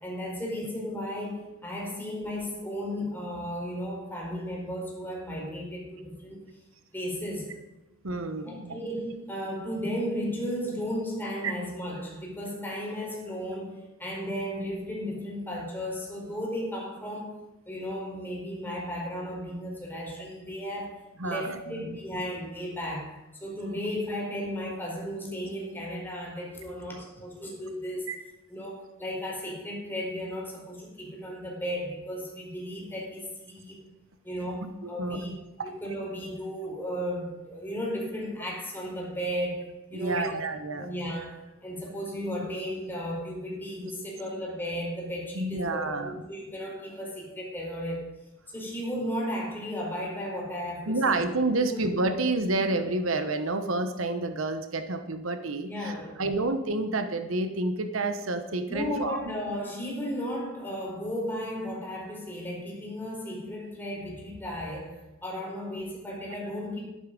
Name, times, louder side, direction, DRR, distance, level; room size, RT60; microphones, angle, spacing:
voice 1, 0.0-6.4 6.9-7.6 8.4-28.1 28.5-33.8 34.2-35.3 35.6-40.3 40.7-48.1 48.5-51.2 51.7-51.8 55.7-56.2 58.7-66.9, equal, 10° left, -2 dB, 4.5 m, -35 dB
voice 2, 8.0-8.8 11.4-11.5 21.2-22.0 28.1-28.2 34.6-35.4 39.9-40.9 45.3-46.2 50.9-55.9 56.2-59.4, right 2 dB, 75° right, 8 dB, 1.0 m, -29 dB
12.0 x 11.0 x 5.2 m, 1.0 s
head